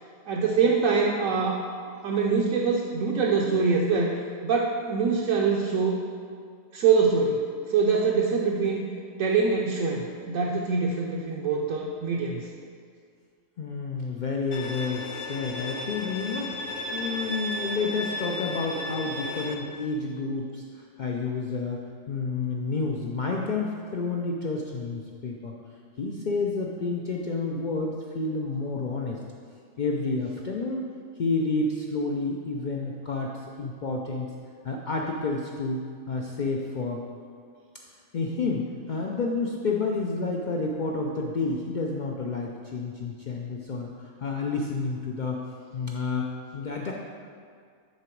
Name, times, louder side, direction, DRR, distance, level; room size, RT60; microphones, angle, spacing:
voice 1, 0.3-1.6 2.0-4.1 4.4-6.0 6.7-8.8 9.2-12.5, right 5 dB, 70° right, -2 dB, 1.0 m, -24 dB
voice 2, 13.6-25.5 26.0-29.2 29.8-30.9 31.2-34.3 34.6-37.0 38.1-45.4 45.7-46.9, left 3 dB, 80° left, 0 dB, 0.4 m, -30 dB
Bowed string instrument, 14.5-19.5, left 1 dB, 60° left, 0.8 m, -34 dB
9.7 x 3.9 x 4.5 m, 2.1 s
omnidirectional pair, 1.5 m